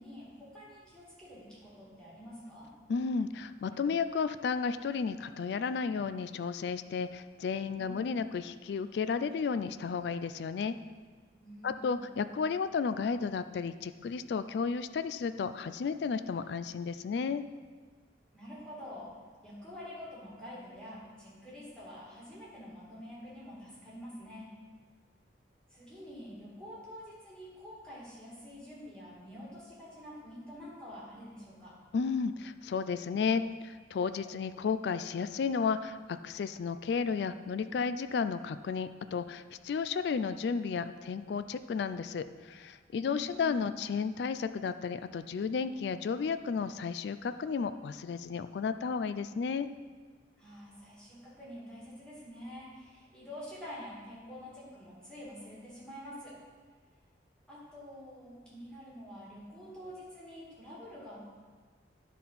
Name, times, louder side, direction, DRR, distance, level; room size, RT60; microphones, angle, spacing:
voice 1, 0.0-2.7 7.7-8.2 11.4-12.0 18.3-19.1 19.4-24.5 25.7-31.8 43.0-43.8 50.4-56.4 57.5-61.2, equal, 5° left, -7 dB, 2.3 m, -47 dB
voice 2, 2.9-10.8 11.6-17.5 31.9-49.7, left 5 dB, 65° left, 12 dB, 0.3 m, -33 dB
10.5 x 4.1 x 5.7 m, 1.5 s
head